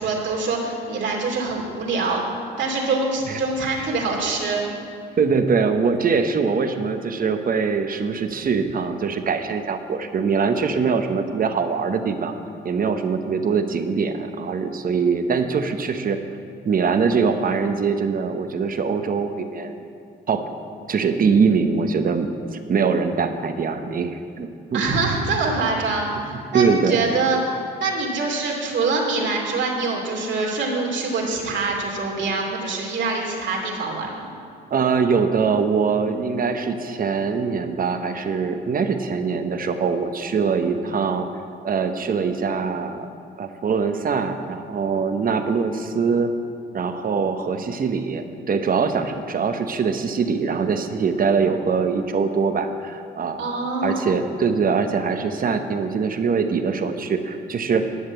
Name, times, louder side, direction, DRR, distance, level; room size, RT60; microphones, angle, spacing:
voice 1, 0.0-2.2 2.6-4.7 24.7-34.3 53.4-54.1, right 3 dB, 70° right, -1 dB, 2.7 m, -24 dB
voice 2, 5.2-12.3 12.6-16.2 16.6-19.8 20.3-20.5 20.9-24.9 26.5-27.0 34.7-41.3 41.6-43.1 43.4-46.3 46.7-53.4 53.8-57.9, right 5 dB, 45° right, 7 dB, 1.0 m, -23 dB
11.5 x 6.6 x 8.0 m, 2.3 s
cardioid pair, 90°, 20 cm